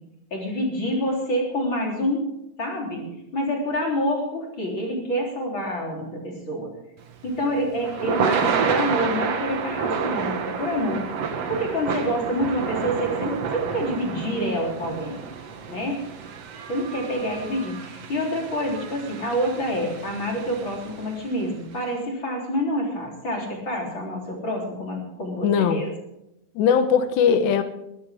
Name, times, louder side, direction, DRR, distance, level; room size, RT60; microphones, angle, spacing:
voice 1, 0.3-2.2 2.6-6.7 7.2-11.1 11.5-15.2 15.7-16.0 16.7-25.9, equal, 30° left, -1 dB, 3.9 m, -27 dB
Thunder / Rain, 7.1-21.3, right 6 dB, 65° right, 1.6 m, -30 dB
voice 2, 25.4-25.8 26.6-27.6, left 7 dB, 75° left, 9 dB, 3.2 m, -19 dB
22.0 x 14.5 x 3.6 m, 0.87 s
omnidirectional pair, 5.2 m